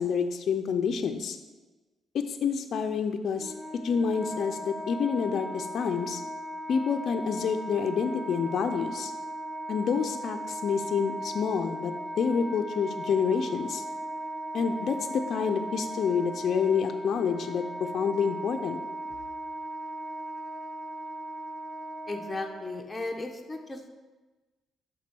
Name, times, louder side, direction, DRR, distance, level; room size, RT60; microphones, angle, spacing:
voice 1, 0.0-1.4 2.3-6.2 6.7-9.1 9.7-13.8 14.5-18.8, left 6 dB, 60° left, 6 dB, 0.4 m, -28 dB
Wind instrument woodwind instrument, 3.3-22.8, right 1 dB, 10° right, 1.3 m, -37 dB
voice 2, 22.1-23.8, left 2 dB, 15° left, 1 dB, 0.7 m, -35 dB
6.0 x 3.6 x 6.0 m, 1.2 s
cardioid pair, 90°, 0 cm